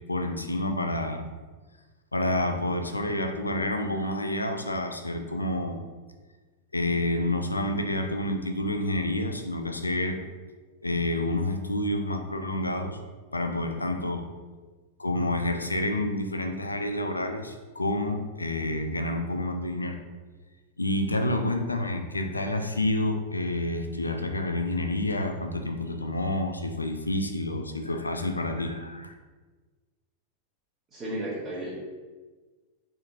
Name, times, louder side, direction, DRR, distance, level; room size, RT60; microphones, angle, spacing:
voice 1, 0.1-1.2 2.1-5.8 6.7-10.2 10.8-13.0 13.3-14.3 15.0-20.0 20.8-29.1, left 1 dB, 80° left, 6 dB, 0.4 m, -29 dB
voice 2, 30.9-31.7, right 1 dB, 30° right, -9 dB, 1.2 m, -33 dB
4.3 x 3.7 x 2.7 m, 1.3 s
figure-of-eight pair, 90°, 0 cm